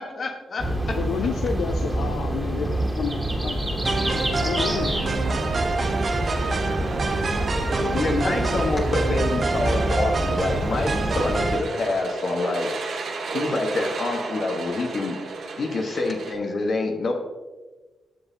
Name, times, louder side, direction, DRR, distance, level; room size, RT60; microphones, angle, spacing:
voice 1, 0.0-1.0 7.9-12.7 13.3-15.2 15.6-17.1, left 3 dB, 60° left, 1 dB, 1.3 m, -27 dB
sound 1, 0.6-11.6, right 1 dB, 15° right, 2.1 m, -26 dB
voice 2, 1.0-3.8 4.4-5.2, left 7 dB, 75° left, 6 dB, 0.3 m, -30 dB
sound 2, 3.9-11.6, right 3 dB, 50° right, 0.8 m, -28 dB
sound 3, 4.6-16.3, right 3 dB, 70° right, 1.2 m, -35 dB
voice 3, 6.8-8.4, left 1 dB, 20° left, 1 dB, 2.1 m, -33 dB
10.5 x 7.0 x 2.8 m, 1.2 s
hypercardioid pair, 40°, 0 cm